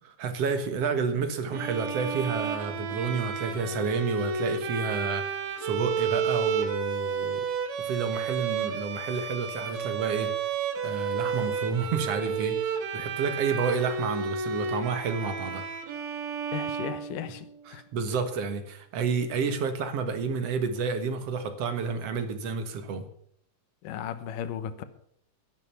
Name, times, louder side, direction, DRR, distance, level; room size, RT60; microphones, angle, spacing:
voice 1, 0.0-7.5 7.8-10.3 10.8-15.6 17.7-23.1, right 5 dB, 55° right, 2.2 m, -30 dB
Bowed string instrument, 1.5-17.6, right 6 dB, 75° right, 3.1 m, -31 dB
voice 2, 16.5-17.5 17.7-17.8 23.8-24.8, left 9 dB, 80° left, 2.5 m, -35 dB
12.0 x 11.0 x 6.9 m
omnidirectional pair, 3.8 m